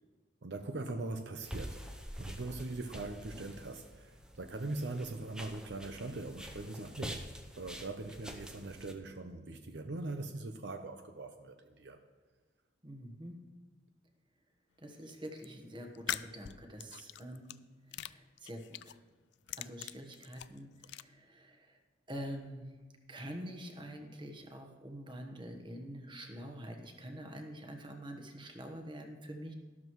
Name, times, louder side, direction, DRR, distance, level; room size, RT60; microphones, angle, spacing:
voice 1, 0.4-1.9 2.2-12.0, right 2 dB, 70° right, 7 dB, 0.7 m, -41 dB
sound 1, 1.4-8.9, equal, 5° right, 0.7 m, -47 dB
voice 2, 12.8-13.4 14.8-17.6 17.9-18.9 19.6-21.8 22.1-22.8 23.1-29.5, equal, 25° right, 4 dB, 1.2 m, -46 dB
sound 2, 15.1-15.5 15.9-17.6 17.9-19.0 19.3-21.0, left 12 dB, 70° left, 0.3 m, -42 dB
12.5 x 12.0 x 3.1 m, 1.3 s
head